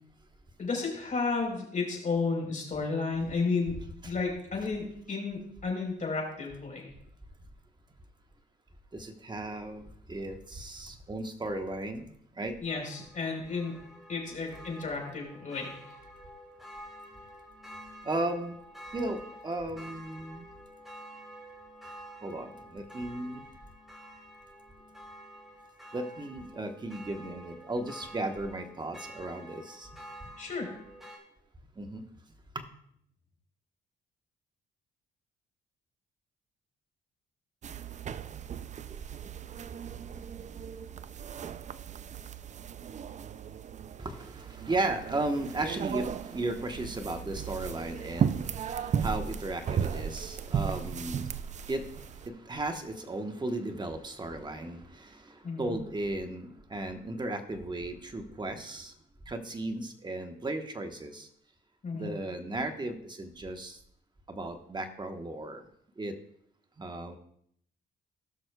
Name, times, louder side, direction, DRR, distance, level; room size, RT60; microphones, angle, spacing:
voice 1, 0.6-3.7 4.0-6.9 12.6-13.7 14.1-15.8 30.4-30.8 55.4-55.7 61.8-62.1, left 4 dB, 40° left, 0 dB, 3.9 m, -32 dB
voice 2, 8.9-12.0 12.4-12.5 18.0-18.6 18.9-20.5 22.2-23.4 25.9-29.9 31.8-32.0 32.5-32.6 44.0-58.9 59.3-61.3 61.9-63.8 64.3-65.6 66.0-66.2 66.8-67.2, right 2 dB, 20° right, 6 dB, 1.1 m, -35 dB
sound 1, 12.7-31.2, equal, ahead, 3.2 m, -49 dB
sound 2, 37.6-52.3, right 8 dB, 35° right, 0.4 m, -36 dB
18.0 x 6.1 x 2.3 m, 0.67 s
cardioid pair, 90°, 20 cm